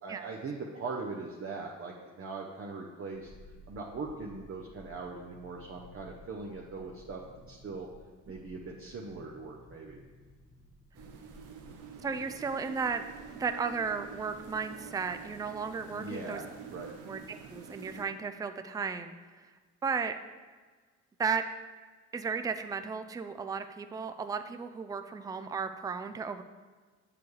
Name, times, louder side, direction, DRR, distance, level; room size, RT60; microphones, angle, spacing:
voice 1, 0.0-3.3 3.7-7.2 7.5-7.9 8.3-10.0 15.9-16.9, right 3 dB, 45° right, -1 dB, 0.9 m, -40 dB
sound 1, 3.1-15.5 15.8-15.9, equal, 10° left, 1.1 m, -56 dB
sound 2, 10.9-18.0, right 6 dB, 85° right, 0.8 m, -47 dB
voice 2, 12.0-13.0 13.4-16.4 17.1-19.1 19.8-20.1 21.2-21.4 22.1-26.4, right 5 dB, 10° right, 9 dB, 0.3 m, -34 dB
6.9 x 6.9 x 3.2 m, 1.4 s
cardioid pair, 90°, 30 cm